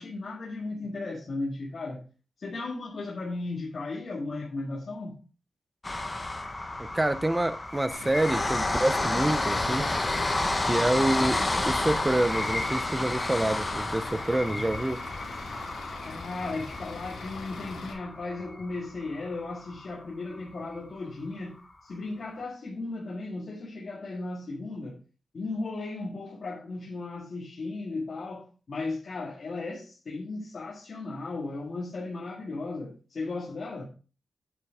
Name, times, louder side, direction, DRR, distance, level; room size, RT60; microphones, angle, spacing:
voice 1, 0.0-2.0 2.4-5.2 16.0-25.0 25.3-33.8, left 3 dB, 40° left, 1.9 m, -36 dB
sound 1, 5.8-20.0 20.4-20.5 20.8-20.9, left 2 dB, 15° left, 1.0 m, -31 dB
voice 2, 6.9-9.9 10.7-15.0, right 1 dB, 10° right, 0.5 m, -27 dB
Bus / Idling, 7.9-17.9, left 3 dB, 85° left, 2.7 m, -42 dB
9.1 x 7.7 x 3.5 m
wide cardioid pair, 175°, 0 cm